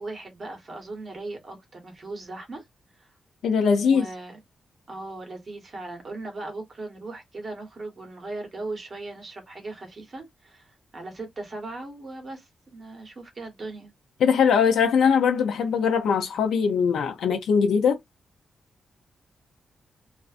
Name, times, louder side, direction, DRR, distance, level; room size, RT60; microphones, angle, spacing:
voice 1, 0.0-2.6 3.0-3.1 3.8-4.4 4.9-13.9, right 2 dB, 30° right, 1.1 m, -38 dB
voice 2, 3.4-4.1 14.2-18.0, left 6 dB, 85° left, 0.4 m, -21 dB
2.4 x 2.4 x 2.4 m
wide cardioid pair, 170°, 0 cm